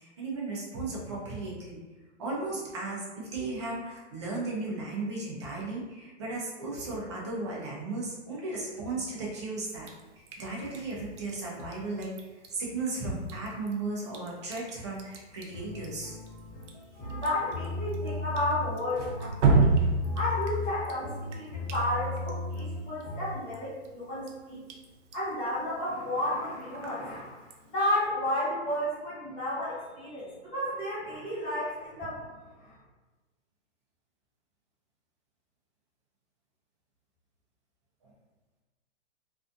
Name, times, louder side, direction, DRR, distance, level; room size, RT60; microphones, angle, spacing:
voice 1, 0.0-1.8 2.2-9.9 10.2-12.1 12.5-16.2, right 3 dB, 25° right, -4 dB, 0.4 m, -35 dB
Drip, 9.8-28.1, right 4 dB, 75° right, 0.5 m, -34 dB
sound 1, 15.5-23.4, left 3 dB, 45° left, 1.0 m, -36 dB
voice 2, 16.9-19.7 20.1-24.6 25.1-32.8, left 1 dB, 15° left, -13 dB, 1.3 m, -32 dB
2.5 x 2.3 x 2.5 m, 1.2 s
hypercardioid pair, 160°, 36 cm